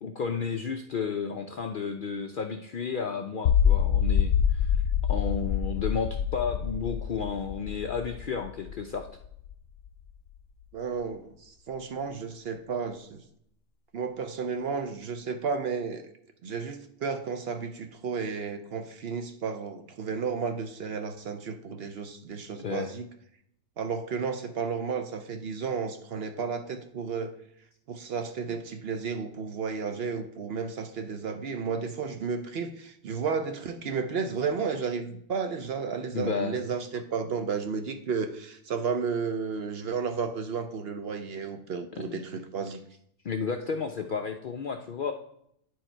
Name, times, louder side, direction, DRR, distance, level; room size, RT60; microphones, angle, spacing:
voice 1, 0.0-4.8 5.1-9.1 22.6-22.9 36.1-36.6 42.1-42.2 43.2-45.1, left 5 dB, 60° left, 5 dB, 0.5 m, -32 dB
sound 1, 3.5-9.5, left 8 dB, 85° left, 1.0 m, -26 dB
voice 2, 10.7-13.2 13.9-16.0 16.4-23.1 23.8-27.3 27.9-42.8, right 5 dB, 60° right, 8 dB, 0.8 m, -32 dB
9.2 x 4.7 x 4.4 m, 0.72 s
omnidirectional pair, 1.3 m